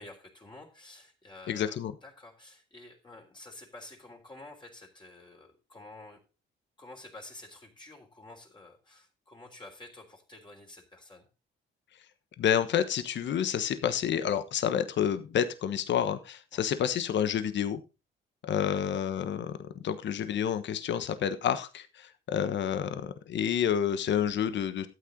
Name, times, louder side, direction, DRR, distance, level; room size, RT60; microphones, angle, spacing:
voice 1, 0.0-6.2 6.8-11.3 16.5-16.6 18.7-18.8, left 2 dB, 25° left, 0 dB, 3.4 m, -50 dB
voice 2, 1.5-1.9 12.4-17.8 18.4-24.9, left 9 dB, 65° left, 11 dB, 1.3 m, -29 dB
13.0 x 8.8 x 3.8 m, 0.30 s
cardioid pair, 90°, 20 cm